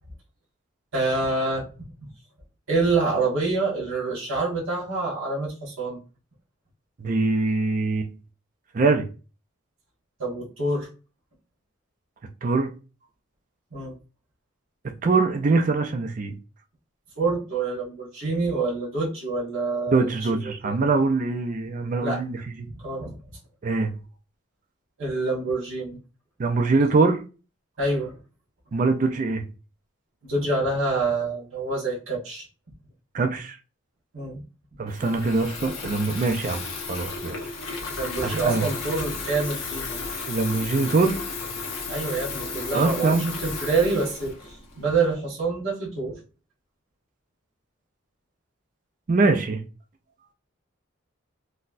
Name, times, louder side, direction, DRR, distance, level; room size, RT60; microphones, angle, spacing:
voice 1, 0.9-1.6 2.7-6.0 10.2-10.9 13.7-13.9 17.2-20.8 22.0-22.2 22.8-23.1 25.0-26.0 27.8-28.1 30.3-32.5 34.1-34.4 38.0-40.0 41.9-46.2, right 3 dB, 80° right, 1.5 m, -26 dB
voice 2, 7.0-8.1 8.7-9.1 12.4-12.7 15.0-16.3 19.9-22.7 23.6-23.9 26.4-27.2 28.7-29.4 33.1-33.6 34.8-37.4 38.2-38.7 40.3-41.2 42.7-43.3 49.1-49.6, right 3 dB, 40° right, 0.4 m, -23 dB
Water tap faucet / Fill (with liquid), 34.9-45.1, left 4 dB, 70° left, 1.0 m, -34 dB
4.1 x 2.1 x 2.5 m
head